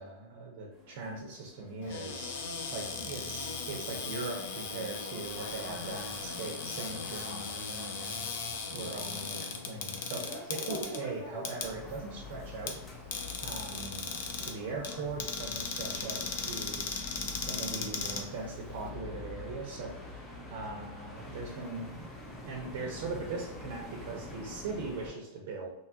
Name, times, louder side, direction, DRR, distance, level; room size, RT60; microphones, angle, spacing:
voice 1, 0.0-2.4 2.7-8.3 8.7-12.8 13.4-14.1 14.4-16.8 17.4-22.1 22.4-25.7, right 3 dB, 60° right, 0 dB, 0.6 m, -40 dB
sound 1, 0.7-16.0, right 1 dB, 10° right, 0.9 m, -50 dB
Cupboard open or close, 1.8-18.9, left 5 dB, 70° left, 0.5 m, -38 dB
sound 2, 11.6-25.1, left 2 dB, 15° left, 0.5 m, -46 dB
2.8 x 2.3 x 2.7 m, 0.85 s
supercardioid pair, 150°, 0 cm